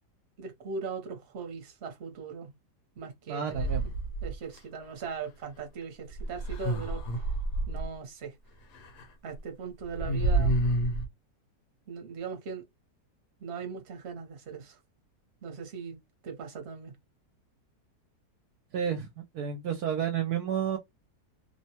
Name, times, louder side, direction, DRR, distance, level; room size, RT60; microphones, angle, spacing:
voice 1, 0.4-2.5 3.0-3.7 4.2-7.2 7.7-8.3 9.2-10.6 11.9-12.6 13.4-14.8 15.4-16.0 16.2-16.9, right 6 dB, 45° right, 1.0 m, -39 dB
voice 2, 3.3-3.8 18.7-19.1 19.3-20.8, right 8 dB, 70° right, 1.0 m, -30 dB
sound 1, 3.5-4.6 6.1-7.9 8.7-9.1 9.4-9.5 9.8-11.1, right 1 dB, 75° left, 1.2 m, -29 dB
2.9 x 2.2 x 2.8 m
omnidirectional pair, 1.8 m